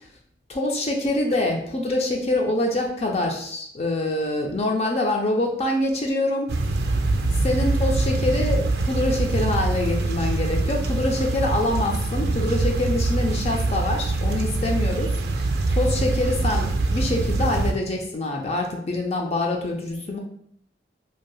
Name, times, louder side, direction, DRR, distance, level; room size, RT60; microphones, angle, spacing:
voice 1, 0.5-6.6 7.4-20.2, left 1 dB, 35° left, 1 dB, 0.4 m, -25 dB
sound 1, 6.5-17.7, right 2 dB, 65° right, 0.4 m, -24 dB
3.3 x 2.6 x 2.2 m, 0.65 s
head